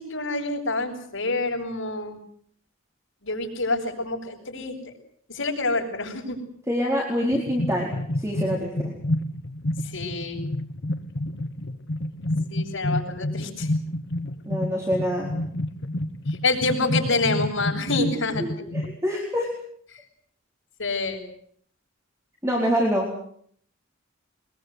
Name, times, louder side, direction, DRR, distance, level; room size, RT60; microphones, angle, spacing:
voice 1, 0.0-2.2 3.2-4.8 5.3-6.4 9.8-10.4 12.5-13.7 16.3-18.4 20.8-21.2, left 3 dB, 75° left, 0 dB, 6.6 m, -27 dB
voice 2, 6.7-8.9 14.4-15.3 18.1-19.5 22.4-23.1, equal, 15° right, -1 dB, 4.3 m, -26 dB
sound 1, 7.3-19.0, left 1 dB, 60° left, 1.0 m, -29 dB
23.0 x 21.5 x 8.1 m, 0.63 s
head